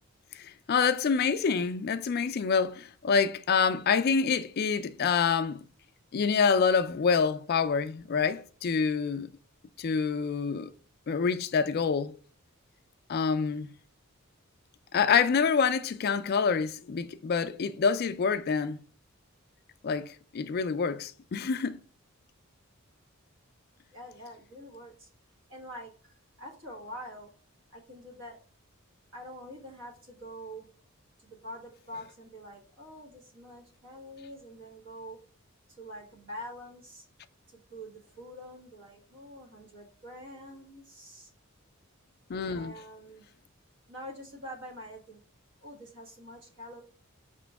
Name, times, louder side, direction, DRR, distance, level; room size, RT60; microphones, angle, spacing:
voice 1, 0.3-5.6 6.1-9.3 9.8-10.7 11.1-12.1 13.1-13.8 14.9-18.8 19.8-21.8 42.3-42.8, left 5 dB, 50° left, 0.3 m, -27 dB
voice 2, 23.9-25.1 25.5-27.3 27.7-28.4 29.1-30.7 31.2-35.2 35.8-37.1 37.5-41.3 42.5-43.2 43.9-45.2 45.6-46.8, equal, 60° right, 1.4 m, -45 dB
4.9 x 3.0 x 3.4 m
head